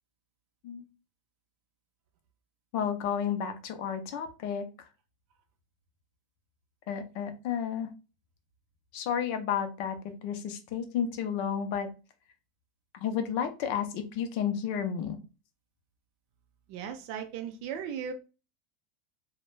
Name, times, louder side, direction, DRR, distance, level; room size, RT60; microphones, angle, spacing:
voice 1, 2.7-4.9 6.9-7.9 8.9-11.9 12.9-15.2, left 8 dB, 55° left, 0.5 m, -32 dB
voice 2, 16.7-18.1, right 8 dB, 55° right, 0.4 m, -37 dB
2.2 x 2.1 x 3.1 m
supercardioid pair, 150°, 0 cm